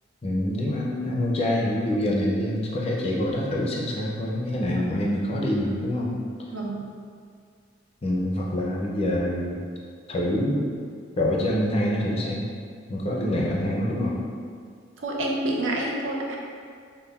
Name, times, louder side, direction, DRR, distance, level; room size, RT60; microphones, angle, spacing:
voice 1, 0.2-6.2 8.0-9.6 10.1-10.7 11.2-12.5 12.9-14.2, left 1 dB, 30° left, -3 dB, 0.4 m, -26 dB
voice 2, 6.5-6.9 15.0-16.4, right 1 dB, 80° right, -2 dB, 0.5 m, -28 dB
5.3 x 2.1 x 2.2 m, 2.1 s
head